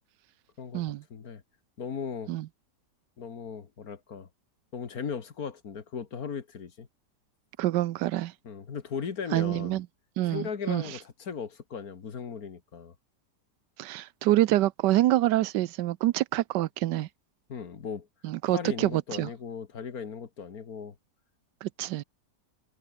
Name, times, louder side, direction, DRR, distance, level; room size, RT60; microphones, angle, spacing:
voice 1, 0.6-1.4 1.8-2.3 3.2-4.3 4.7-6.9 8.4-9.8 10.3-12.9 17.5-18.1 18.5-21.0, left 6 dB, 60° left, 2.1 m, -37 dB
voice 2, 7.6-8.3 9.3-9.9 10.2-10.8 13.8-17.1 18.2-19.3 21.6-22.0, right 15 dB, 85° right, 1.3 m, -26 dB
omnidirectional pair, 1.8 m